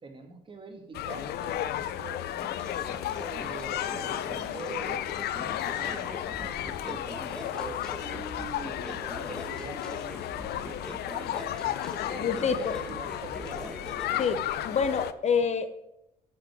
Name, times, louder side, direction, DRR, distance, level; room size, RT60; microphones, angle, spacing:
voice 1, 0.0-2.8 3.1-5.0 5.7-7.3 7.5-10.3 11.7-13.7, right 3 dB, 30° right, 4 dB, 2.4 m, -44 dB
sound 1, 0.9-15.1, left 12 dB, 70° left, 0.7 m, -33 dB
sound 2, 2.4-14.2, left 1 dB, 5° left, 1.4 m, -43 dB
voice 2, 12.0-12.8 14.2-14.4 14.6-15.7, left 6 dB, 40° left, 10 dB, 0.8 m, -27 dB
10.5 x 6.1 x 7.5 m, 0.85 s
cardioid pair, 110°, 17 cm